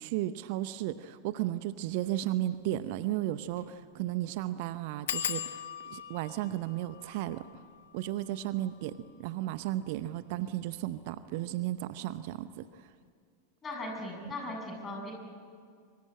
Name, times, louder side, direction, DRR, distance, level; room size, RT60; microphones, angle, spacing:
voice 1, 0.0-7.5 7.9-12.9, right 14 dB, 50° right, 14 dB, 0.7 m, -34 dB
sound 1, 1.9-2.1 2.5-2.6 2.8-2.9 3.5-3.7 4.0-4.1 5.1-10.3 11.0-11.5 11.9-12.2 12.5-12.6, left 11 dB, 60° left, 0.9 m, -41 dB
voice 2, 13.6-15.1, left 1 dB, 20° left, 1 dB, 7.7 m, -38 dB
24.5 x 23.5 x 9.8 m, 2.2 s
figure-of-eight pair, 90°, 0 cm